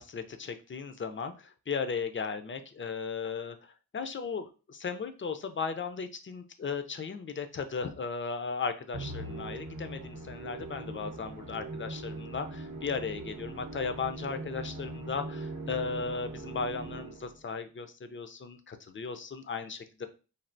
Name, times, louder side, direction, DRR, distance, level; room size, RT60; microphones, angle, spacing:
voice 1, 0.0-3.6 3.9-20.1, left 5 dB, 35° left, 8 dB, 0.4 m, -36 dB
Musical instrument, 8.9-17.4, right 2 dB, 50° right, 0.7 m, -41 dB
3.2 x 2.3 x 2.5 m, 0.34 s
cardioid pair, 50°, 37 cm